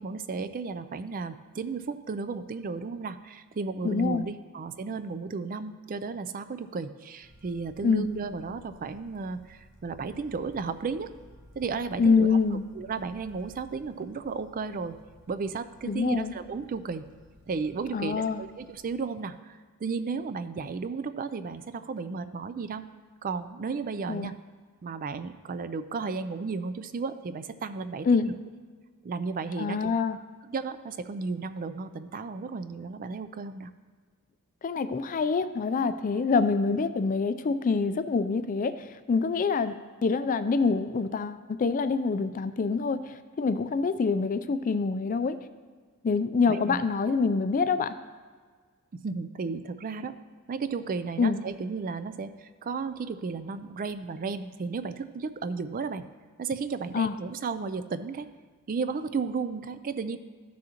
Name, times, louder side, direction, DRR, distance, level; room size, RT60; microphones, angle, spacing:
voice 1, 0.0-11.1 11.6-12.3 12.7-15.0 15.3-17.1 17.5-22.8 23.2-24.3 24.8-28.3 29.0-29.9 30.4-33.7 46.5-46.8 48.9-50.2 50.5-56.0 56.4-58.3 58.7-60.2, right 4 dB, 40° right, 12 dB, 0.4 m, -34 dB
voice 2, 3.8-4.2 7.8-8.1 12.0-12.6 15.9-16.3 17.9-18.4 24.1-24.3 28.0-28.3 29.6-30.2 34.6-39.8 40.0-45.4 46.0-47.9 51.2-51.4 56.9-57.1, left 4 dB, 35° left, 11 dB, 0.4 m, -26 dB
sound 1, 7.2-18.8, equal, 65° right, 1.1 m, -56 dB
14.5 x 6.2 x 2.9 m, 1.5 s
head